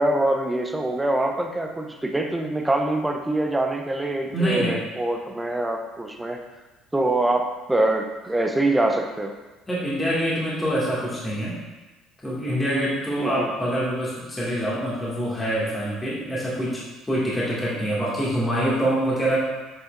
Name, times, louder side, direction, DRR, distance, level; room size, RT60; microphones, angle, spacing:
voice 1, 0.0-6.4 6.9-9.3 13.2-13.5, right 1 dB, 10° right, 4 dB, 0.7 m, -24 dB
voice 2, 4.3-4.8 9.7-11.5 12.2-19.4, right 1 dB, 10° left, -8 dB, 2.1 m, -25 dB
8.3 x 5.6 x 2.5 m, 1.2 s
cardioid pair, 115°, 0 cm